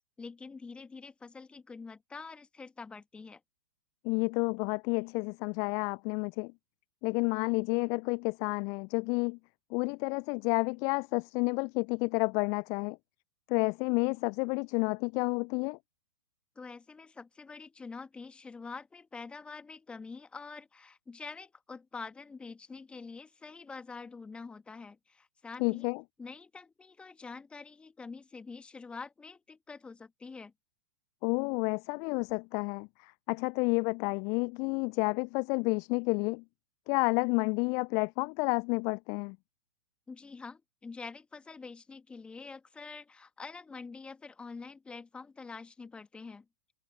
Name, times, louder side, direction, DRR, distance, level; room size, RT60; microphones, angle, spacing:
voice 1, 0.2-3.4 16.6-25.9 26.2-30.5 40.1-46.5, left 4 dB, 10° left, 2.0 m, -46 dB
voice 2, 4.0-6.5 7.0-9.4 9.7-13.0 13.5-15.8 25.6-26.0 31.2-36.4 36.9-39.4, left 34 dB, 35° left, 0.5 m, -30 dB
open air
figure-of-eight pair, 100°, 10 cm